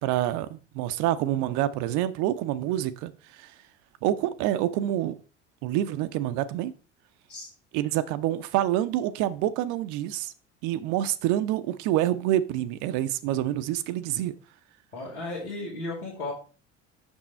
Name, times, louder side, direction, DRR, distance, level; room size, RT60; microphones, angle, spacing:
voice 1, 0.0-3.5 4.0-5.2 5.6-6.7 7.7-10.3 10.6-14.3, right 13 dB, 50° right, 0.6 m, -27 dB
voice 2, 14.9-16.3, left 2 dB, 90° left, 2.0 m, -34 dB
6.2 x 6.1 x 4.2 m
figure-of-eight pair, 65°, 38 cm